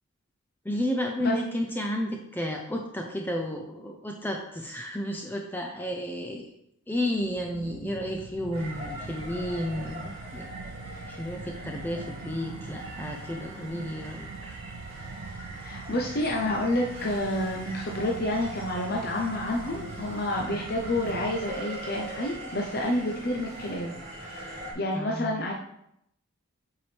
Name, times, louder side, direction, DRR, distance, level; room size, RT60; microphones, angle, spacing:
voice 1, 0.6-6.5 6.9-10.5 11.1-14.6 20.5-20.6 24.9-25.4, left 1 dB, 10° left, 1 dB, 0.5 m, -32 dB
sound 1, 7.2-21.4, right 5 dB, 75° right, 0.4 m, -43 dB
sound 2, 8.5-24.7, right 1 dB, 30° right, 1.9 m, -41 dB
voice 2, 15.6-25.5, left 1 dB, 50° left, 0 dB, 0.8 m, -29 dB
8.0 x 4.8 x 3.4 m, 0.76 s
head